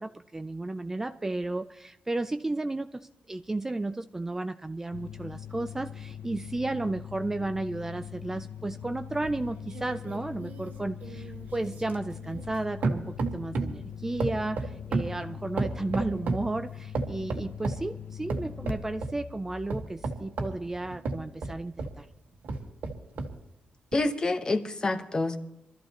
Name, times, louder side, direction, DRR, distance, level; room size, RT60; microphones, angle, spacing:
voice 1, 0.0-22.1, right 2 dB, 15° right, 9 dB, 0.4 m, -33 dB
sound 1, 4.9-21.3, left 9 dB, 80° left, 0.9 m, -42 dB
sound 2, 9.2-12.6 12.8-13.8 14.2-16.5 16.9-17.9 18.3-19.2 19.7-22.0 22.4-23.4 23.9-24.0, right 3 dB, 75° right, 1.6 m, -33 dB
voice 2, 23.9-25.4, left 2 dB, 25° left, 7 dB, 1.1 m, -27 dB
23.5 x 13.5 x 3.0 m, 0.88 s
wide cardioid pair, 145°, 3 cm